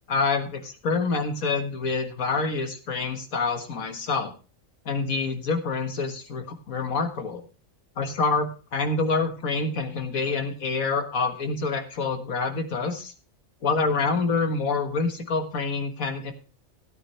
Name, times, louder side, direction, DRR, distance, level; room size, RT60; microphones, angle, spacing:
voice 1, 0.1-4.3 4.9-7.4 8.0-13.1 13.6-16.3, left 4 dB, 85° left, 6 dB, 2.0 m, -27 dB
16.5 x 9.2 x 3.3 m, 0.34 s
omnidirectional pair, 1.4 m